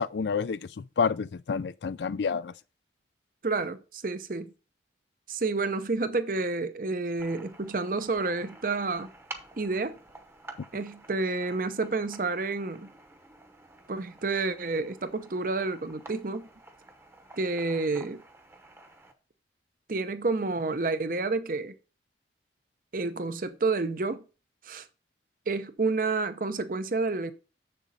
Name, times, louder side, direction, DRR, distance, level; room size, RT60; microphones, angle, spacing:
voice 1, 0.0-2.5, left 5 dB, 75° left, 0.4 m, -29 dB
voice 2, 3.4-4.5 5.3-9.1 9.6-10.0 10.7-12.9 13.9-16.5 17.4-18.2 19.9-21.7 22.9-24.2 24.6-24.9 25.5-27.3, right 3 dB, 50° right, 0.7 m, -29 dB
Walkie Talkie Static, 7.2-19.1, right 2 dB, 15° right, 0.9 m, -50 dB
7.4 x 6.8 x 4.1 m
head